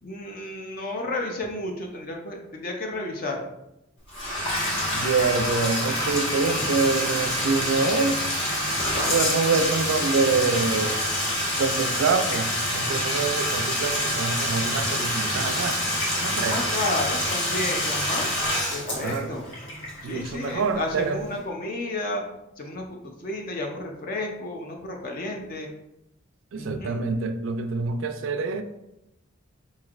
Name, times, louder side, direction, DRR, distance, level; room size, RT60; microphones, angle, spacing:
voice 1, 0.0-3.4 6.6-6.7 16.5-18.3 18.7-19.5 20.0-22.2 22.6-22.8 23.2-25.7 26.5-27.0, left 2 dB, 45° left, 2 dB, 0.5 m, -31 dB
Bathtub (filling or washing), 4.1-20.8, left 1 dB, 60° left, 1.1 m, -27 dB
voice 2, 4.9-8.2 9.1-11.0 11.6-15.8 16.2-16.6 19.0-19.3 20.0-21.3 26.5-28.6, right 4 dB, 75° right, 8 dB, 0.4 m, -26 dB
4.3 x 3.1 x 2.4 m, 0.87 s
head